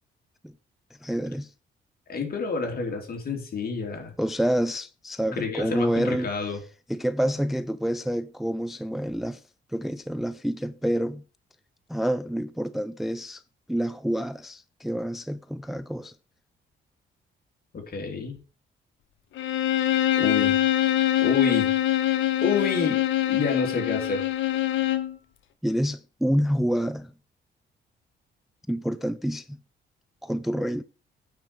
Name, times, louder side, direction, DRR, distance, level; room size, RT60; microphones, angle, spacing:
voice 1, 1.0-1.5 4.2-6.3 6.9-9.4 9.7-11.2 11.9-13.4 13.7-16.2 25.6-27.1 28.7-29.6 30.2-30.8, equal, ahead, 0.4 m, -28 dB
voice 2, 2.1-4.1 5.4-6.6 17.7-18.4 20.1-20.6 21.2-21.7 22.1-23.0 23.3-24.3, left 5 dB, 50° left, 3.4 m, -28 dB
Bowed string instrument, 19.4-25.1, left 12 dB, 75° left, 1.2 m, -24 dB
9.3 x 5.0 x 7.0 m
cardioid pair, 90°, 20 cm